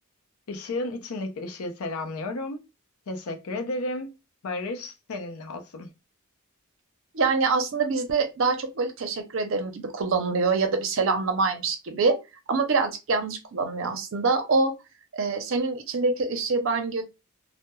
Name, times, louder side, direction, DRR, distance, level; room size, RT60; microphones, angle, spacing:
voice 1, 0.5-2.6 3.1-4.1 4.4-5.9, left 2 dB, 90° left, 0.5 m, -33 dB
voice 2, 7.1-12.2 12.5-14.7 15.1-17.0, right 4 dB, 60° right, 0.5 m, -25 dB
2.2 x 2.0 x 3.0 m
head